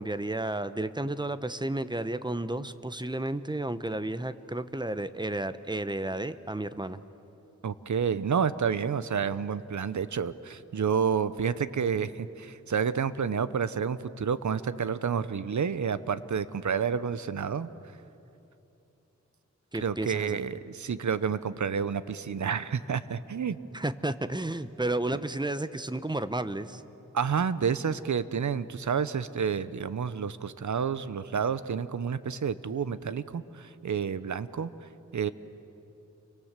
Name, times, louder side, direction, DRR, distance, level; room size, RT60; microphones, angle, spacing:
voice 1, 0.0-7.0 19.7-20.4 23.7-26.8, right 1 dB, 15° right, 12 dB, 0.9 m, -32 dB
voice 2, 7.6-17.7 19.7-23.6 27.1-35.3, right 6 dB, 75° right, 14 dB, 0.9 m, -30 dB
29.5 x 25.0 x 7.5 m, 2.9 s
wide cardioid pair, 80°, 29 cm